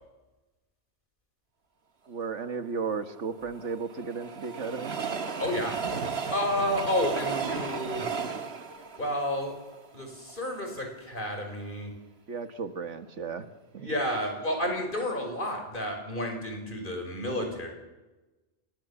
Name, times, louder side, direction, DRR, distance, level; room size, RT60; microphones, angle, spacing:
voice 1, 2.1-5.0 12.3-13.5 13.7-13.9, right 5 dB, 90° right, 9 dB, 1.9 m, -34 dB
Train, 3.1-10.4 10.9-11.0 11.2-11.3, right 5 dB, 60° right, 1.8 m, -34 dB
voice 2, 5.4-5.8 6.3-8.1 9.0-9.6 9.9-11.9 13.8-17.7, left 1 dB, 45° left, 3 dB, 5.8 m, -31 dB
27.5 x 20.5 x 7.2 m, 1.1 s
omnidirectional pair, 1.2 m